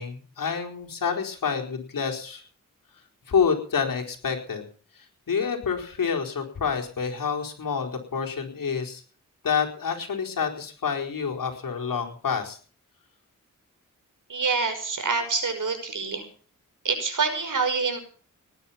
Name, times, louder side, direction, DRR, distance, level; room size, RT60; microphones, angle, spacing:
voice 1, 0.0-2.4 3.3-4.6 5.0-9.0 9.4-12.6, left 6 dB, 85° left, 2 dB, 4.5 m, -28 dB
voice 2, 14.3-16.2 16.8-18.0, right 4 dB, 70° right, 7 dB, 5.7 m, -26 dB
19.0 x 11.0 x 5.9 m, 0.42 s
cardioid pair, 65°, 33 cm